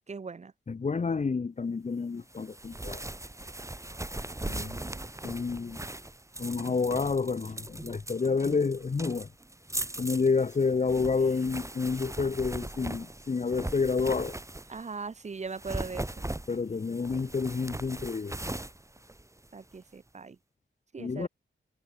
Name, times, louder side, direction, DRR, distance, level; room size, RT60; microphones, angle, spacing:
voice 1, 0.1-0.5 4.4-5.1 14.7-16.3 19.5-20.4 20.9-21.3, right 4 dB, 35° right, 0.7 m, -40 dB
voice 2, 0.7-3.1 4.5-4.7 5.2-5.8 6.4-9.3 10.0-14.4 16.5-18.4 21.0-21.3, left 4 dB, 35° left, 0.7 m, -29 dB
sound 1, 2.3-14.9 15.5-19.8, right 1 dB, 15° right, 2.1 m, -39 dB
wide cardioid pair, 105°, 20 cm